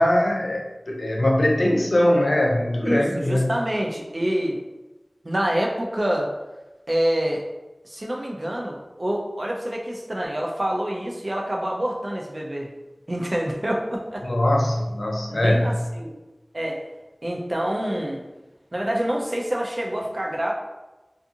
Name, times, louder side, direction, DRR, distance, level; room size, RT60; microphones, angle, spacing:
voice 1, 0.0-3.5 14.2-15.7, left 1 dB, 75° left, 0 dB, 0.4 m, -21 dB
voice 2, 2.8-4.6 5.2-6.3 6.9-7.4 7.8-12.7 13.1-14.3 15.3-16.1 16.5-16.8 17.2-18.3 18.7-20.5, right 1 dB, 50° right, -1 dB, 0.5 m, -26 dB
2.5 x 2.5 x 2.7 m, 1.1 s
wide cardioid pair, 40°, 0 cm